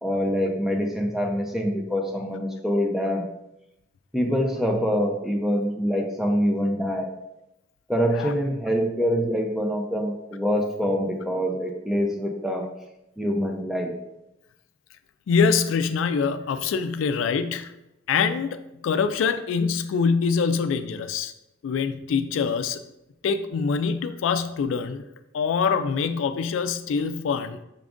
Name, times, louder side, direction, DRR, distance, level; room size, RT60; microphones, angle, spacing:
voice 1, 0.0-3.3 4.1-7.1 7.9-12.7 13.2-13.9, equal, ahead, 2 dB, 0.5 m, -25 dB
voice 2, 15.3-17.7 18.1-21.3 21.6-22.8 23.2-25.0 25.3-27.6, left 5 dB, 90° left, 11 dB, 0.3 m, -24 dB
5.9 x 2.5 x 3.5 m, 0.89 s
head